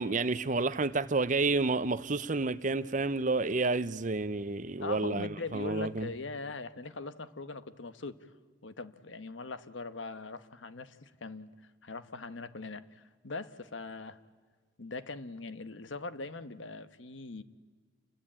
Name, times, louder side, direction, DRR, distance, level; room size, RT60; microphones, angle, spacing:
voice 1, 0.0-6.1, right 3 dB, 40° right, 0.7 m, -30 dB
voice 2, 4.8-8.2 8.6-11.5 11.8-14.2 14.8-17.4, left 3 dB, 85° left, 1.2 m, -41 dB
28.5 x 22.0 x 8.9 m
head